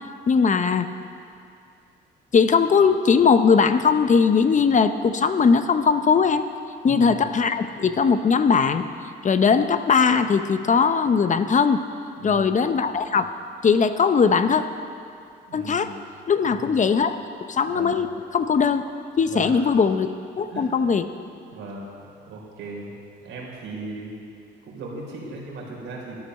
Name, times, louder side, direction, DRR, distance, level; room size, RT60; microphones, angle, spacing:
voice 1, 0.3-0.9 2.3-6.4 6.8-8.8 9.2-11.8 12.2-13.3 13.6-14.6 15.5-15.9 16.3-18.1 18.3-18.8 19.2-20.1 20.4-21.0, left 5 dB, 40° left, 10 dB, 0.7 m, -19 dB
voice 2, 6.9-7.3 12.2-12.5 15.5-15.9 16.4-16.8 17.6-18.0 19.2-19.7 20.5-20.9 21.5-21.9 22.2-23.0 23.2-24.1 24.6-26.2, right 3 dB, 90° right, -3 dB, 3.8 m, -37 dB
12.5 x 12.0 x 6.4 m, 2.4 s
cardioid pair, 90°, 20 cm